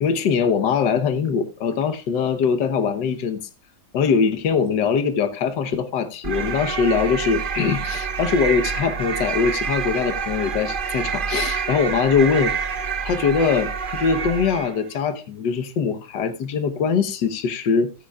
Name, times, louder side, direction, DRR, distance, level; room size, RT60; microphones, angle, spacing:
voice 1, 0.0-3.4 3.9-12.5 13.1-17.9, left 6 dB, 75° left, 1.7 m, -22 dB
sound 1, 6.2-14.8, right 6 dB, 45° right, 0.7 m, -27 dB
17.0 x 9.8 x 2.4 m
omnidirectional pair, 1.9 m